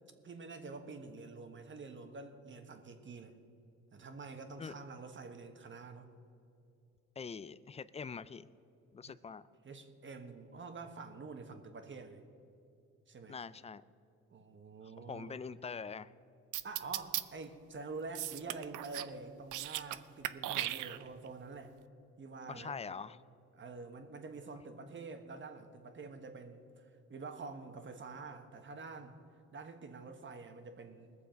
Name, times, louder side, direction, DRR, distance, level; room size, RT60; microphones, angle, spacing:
voice 1, 0.2-3.3 3.9-6.1 9.0-9.2 9.6-12.2 13.1-13.4 14.3-15.4 16.6-21.7 22.2-22.8 23.5-29.2 29.5-31.1, right 4 dB, 40° right, 6 dB, 1.4 m, -47 dB
voice 2, 7.2-8.5 8.9-9.4 13.3-13.8 15.1-16.1 22.5-23.2, left 5 dB, 20° left, 17 dB, 0.4 m, -43 dB
sound 1, 16.5-17.2 18.2-19.1 19.4-20.0 20.2-21.3, right 14 dB, 80° right, 0.5 m, -37 dB
20.5 x 7.0 x 5.2 m, 2.7 s
cardioid pair, 90°, 30 cm